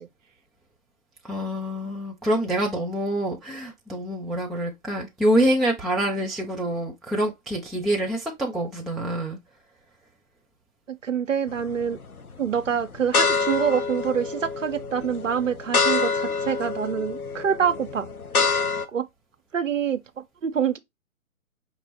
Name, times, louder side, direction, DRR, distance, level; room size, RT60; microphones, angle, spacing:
voice 1, 1.2-9.4, right 1 dB, ahead, 0.3 m, -26 dB
voice 2, 10.9-12.0 12.4-18.1 18.9-19.1 19.5-20.8, right 7 dB, 60° right, 0.6 m, -26 dB
sound 1, 11.5-12.0 12.5-18.9, left 4 dB, 80° left, 0.8 m, -26 dB
5.0 x 2.6 x 3.0 m
figure-of-eight pair, 140°, 43 cm